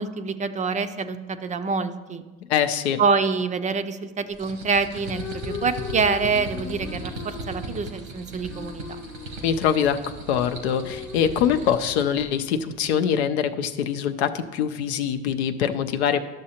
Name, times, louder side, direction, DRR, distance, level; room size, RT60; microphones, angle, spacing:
voice 1, 0.0-2.2 3.0-8.8, right 5 dB, 25° right, 11 dB, 0.4 m, -26 dB
voice 2, 2.5-3.0 9.4-10.0 10.3-16.2, left 8 dB, 90° left, 8 dB, 0.5 m, -23 dB
sound 1, 4.3-12.2, right 2 dB, 85° right, 1.3 m, -38 dB
sound 2, 4.9-13.1, left 6 dB, 45° left, 0.9 m, -39 dB
12.0 x 6.4 x 2.9 m, 1.3 s
hypercardioid pair, 85°, 32 cm